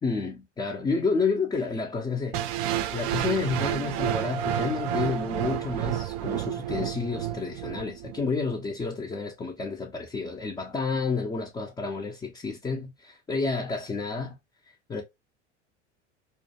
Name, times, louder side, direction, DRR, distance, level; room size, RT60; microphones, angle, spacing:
voice 1, 0.0-2.6 2.9-14.4 14.7-15.0, left 4 dB, 10° left, 0.4 m, -30 dB
sound 1, 2.3-8.3, right 10 dB, 60° right, 0.4 m, -30 dB
2.4 x 2.2 x 2.7 m
hypercardioid pair, 80°, 35 cm